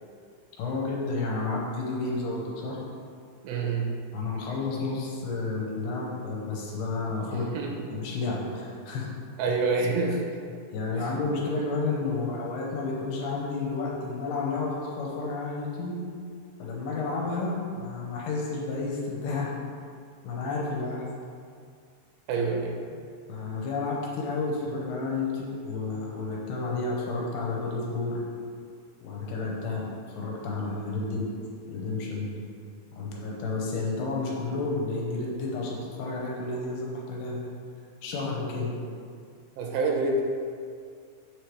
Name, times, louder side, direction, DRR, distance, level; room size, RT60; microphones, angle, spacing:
voice 1, 0.6-2.8 4.1-7.4 7.9-9.1 10.7-16.0 16.6-19.5 20.2-21.1 22.4-22.5 23.3-28.2 29.0-31.3 31.7-32.3 33.0-37.4 38.0-38.7, left 3 dB, 80° left, -3 dB, 2.7 m, -31 dB
voice 2, 3.4-4.0 7.3-7.9 9.4-10.4 11.0-11.1 22.3-22.7 39.6-40.2, right 3 dB, 80° right, 0 dB, 2.8 m, -27 dB
6.8 x 3.2 x 4.6 m, 2.2 s
omnidirectional pair, 4.9 m